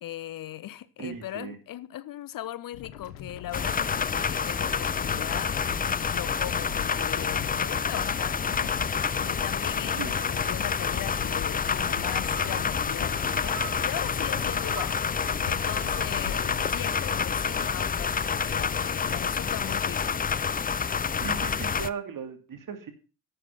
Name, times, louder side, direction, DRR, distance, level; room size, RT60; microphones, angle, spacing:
voice 1, 0.0-5.6 6.1-8.6 9.2-15.0 15.4-20.2, left 13 dB, 55° left, 0.8 m, -39 dB
voice 2, 1.0-1.6 9.9-10.2 21.2-22.9, right 6 dB, 50° right, 2.7 m, -37 dB
sound 1, 2.7-16.8, left 11 dB, 90° left, 1.2 m, -42 dB
sound 2, 3.5-21.9, left 6 dB, 20° left, 0.6 m, -28 dB
sound 3, 11.7-18.4, right 5 dB, 75° right, 5.3 m, -45 dB
11.5 x 7.8 x 5.8 m
hypercardioid pair, 55°, 41 cm